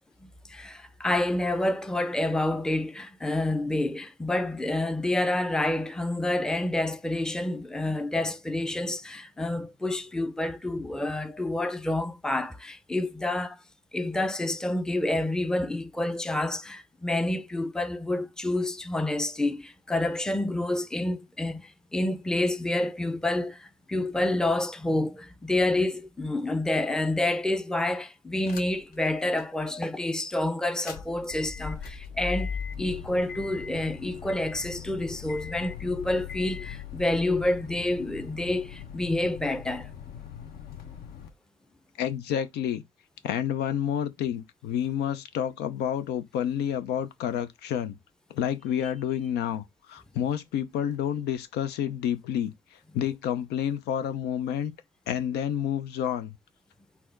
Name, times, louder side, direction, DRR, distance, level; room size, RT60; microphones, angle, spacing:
voice 1, 0.2-13.6 13.9-32.5 32.8-39.9, left 1 dB, 5° left, 0.5 m, -28 dB
sound 1, 28.4-28.9 29.4-29.5 30.6-41.3, left 7 dB, 60° left, 1.1 m, -39 dB
voice 2, 42.0-42.8 43.2-48.0 48.3-49.6 49.9-52.5 52.9-54.7 55.1-56.3, left 9 dB, 80° left, 0.7 m, -29 dB
4.3 x 2.8 x 4.5 m
cardioid pair, 110°, 17 cm